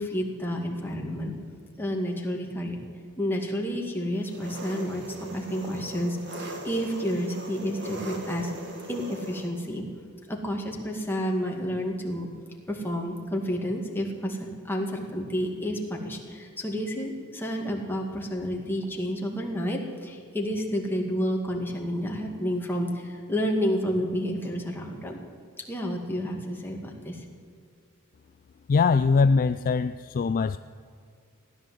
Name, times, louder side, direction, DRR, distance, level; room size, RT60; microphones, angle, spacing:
voice 1, 0.0-1.4 1.8-2.8 3.2-5.0 5.3-8.5 8.9-9.8 10.3-12.3 12.7-14.4 14.6-25.2 25.6-27.2, equal, 10° left, 0 dB, 2.1 m, -30 dB
Engine, 4.2-9.5, right 2 dB, 55° right, 1.9 m, -39 dB
voice 2, 28.7-30.6, left 4 dB, 40° left, 12 dB, 0.3 m, -22 dB
16.5 x 10.5 x 7.7 m, 2.4 s
head